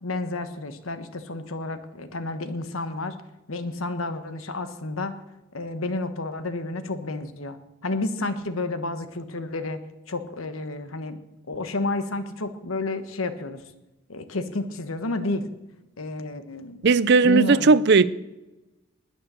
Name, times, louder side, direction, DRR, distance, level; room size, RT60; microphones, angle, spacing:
voice 1, 0.0-3.2 3.5-5.2 5.5-9.8 10.1-11.2 11.5-13.6 14.1-15.5 16.0-16.8 17.2-17.8, left 2 dB, 90° left, 1.3 m, -30 dB
voice 2, 16.8-18.1, right 4 dB, 55° right, 0.5 m, -17 dB
20.0 x 6.7 x 6.9 m
head